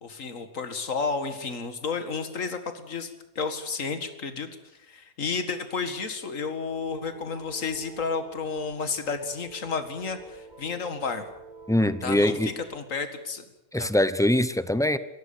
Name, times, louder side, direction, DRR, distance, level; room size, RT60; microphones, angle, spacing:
voice 1, 0.0-4.5 4.9-11.2 12.0-13.4 13.7-13.9, left 5 dB, 65° left, 8 dB, 2.3 m, -32 dB
sound 1, 6.6-12.8, right 3 dB, 35° right, 1.7 m, -48 dB
voice 2, 11.7-12.5 13.7-15.0, left 1 dB, 5° left, 13 dB, 0.7 m, -23 dB
23.0 x 17.5 x 8.7 m, 0.88 s
omnidirectional pair, 1.5 m